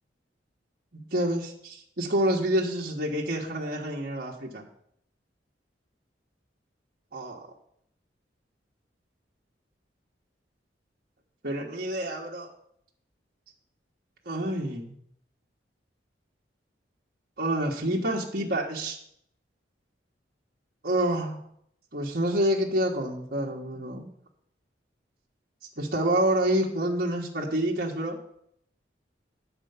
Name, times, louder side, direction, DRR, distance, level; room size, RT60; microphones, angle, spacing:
voice 1, 0.9-4.6 7.1-7.4 11.4-12.5 14.2-14.9 17.4-19.0 20.8-21.4 21.9-24.1 25.8-28.2, right 1 dB, 55° right, -2 dB, 1.4 m, -28 dB
11.0 x 4.5 x 6.8 m, 0.70 s
head